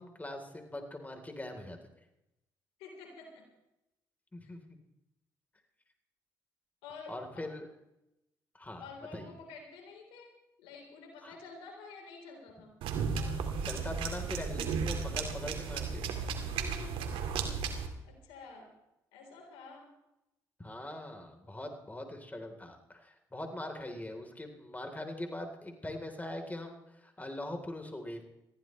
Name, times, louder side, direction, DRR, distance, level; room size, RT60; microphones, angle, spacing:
voice 1, 0.0-1.8 4.3-4.6 7.1-7.7 8.5-8.8 9.1-9.3 11.2-11.3 13.6-16.3 20.6-28.2, left 1 dB, 20° left, 4 dB, 3.8 m, -42 dB
voice 2, 2.8-3.5 4.4-4.5 6.8-7.4 8.8-12.8 16.5-17.4 18.0-18.7 19.1-20.0, left 4 dB, 85° left, 1 dB, 4.0 m, -50 dB
sound 1, 12.8-17.9, right 5 dB, 80° right, 2.1 m, -34 dB
21.5 x 15.0 x 3.3 m, 0.89 s
supercardioid pair, 55°, 9 cm